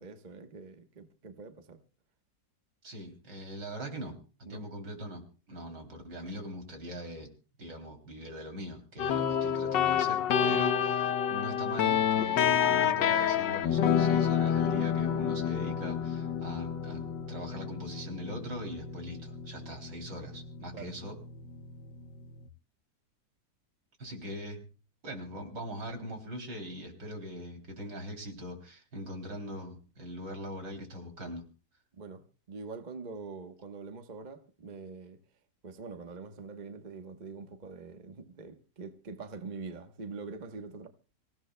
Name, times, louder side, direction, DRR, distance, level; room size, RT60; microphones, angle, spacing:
voice 1, 0.0-1.8 4.5-4.6 10.5-10.6 20.7-20.9 32.0-35.2 35.6-40.9, right 4 dB, 30° right, 0.9 m, -44 dB
voice 2, 2.8-7.3 7.6-21.2 24.0-24.6 25.0-31.4, equal, 70° right, 3.7 m, -41 dB
sound 1, 9.0-22.5, left 8 dB, 75° left, 1.5 m, -29 dB
25.5 x 16.0 x 2.2 m
omnidirectional pair, 2.0 m